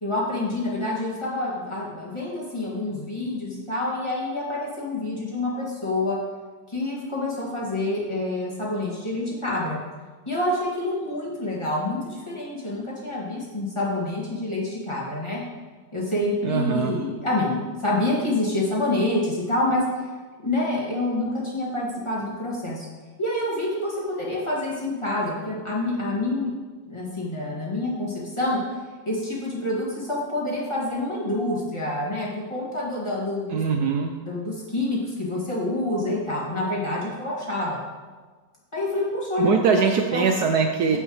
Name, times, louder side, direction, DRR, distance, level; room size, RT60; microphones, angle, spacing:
voice 1, 0.0-6.2 6.7-9.8 10.3-15.4 15.9-20.1 20.4-22.9 23.2-26.5 26.9-28.6 29.1-33.6 34.2-37.8 38.7-39.5 40.1-40.3 40.9-41.0, left 2 dB, 15° left, -6 dB, 2.1 m, -27 dB
voice 2, 16.4-17.0 33.5-34.1 39.4-41.0, right 5 dB, 70° right, 4 dB, 1.1 m, -22 dB
15.0 x 5.6 x 3.2 m, 1.4 s
omnidirectional pair, 1.9 m